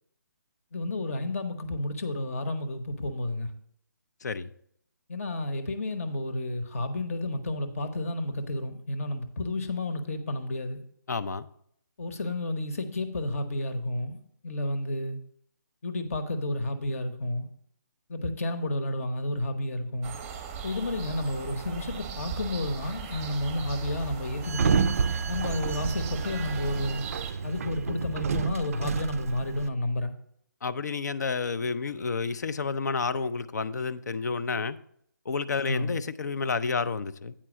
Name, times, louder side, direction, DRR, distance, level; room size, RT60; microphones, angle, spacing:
voice 1, 0.7-3.5 5.1-10.8 12.0-14.2 14.4-15.2 15.8-17.4 18.1-20.1 20.6-24.8 25.3-27.1 27.4-30.1 35.7-36.0, left 1 dB, 45° left, 1.0 m, -31 dB
voice 2, 11.1-11.5 30.6-34.8 35.3-37.3, left 4 dB, 60° left, 0.5 m, -30 dB
sound 1, 20.0-27.3, right 7 dB, 15° right, 0.7 m, -38 dB
Sliding door, 24.4-29.7, right 6 dB, 50° right, 0.3 m, -30 dB
8.8 x 4.5 x 6.1 m
figure-of-eight pair, 155°, 10 cm